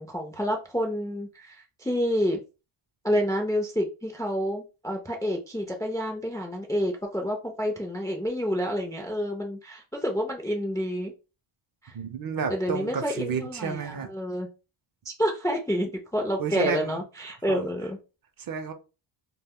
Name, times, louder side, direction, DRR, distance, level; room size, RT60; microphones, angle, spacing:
voice 1, 0.0-2.4 3.0-11.1 11.8-11.9 12.5-14.5 15.1-18.0, equal, 10° left, 0.3 m, -29 dB
voice 2, 11.9-14.1 16.4-17.0 17.5-17.6 18.4-18.7, right 6 dB, 45° right, 0.5 m, -31 dB
2.3 x 2.2 x 3.5 m
cardioid pair, 120°, 49 cm